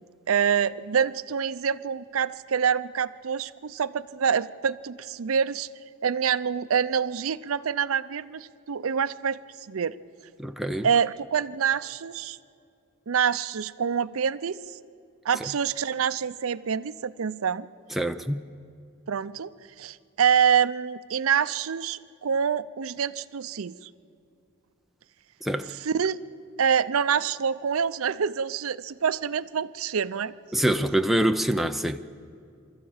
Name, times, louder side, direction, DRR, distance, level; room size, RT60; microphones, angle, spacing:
voice 1, 0.3-5.7 6.0-9.4 9.7-10.0 10.8-12.4 13.1-14.6 15.2-17.7 19.1-19.5 19.8-23.9 25.8-26.2 26.6-30.3, right 7 dB, 75° right, 0.5 m, -26 dB
voice 2, 10.4-10.9 15.4-15.5 17.9-18.4 25.4-25.7 30.5-32.0, right 1 dB, ahead, 0.5 m, -25 dB
25.0 x 13.5 x 8.7 m
head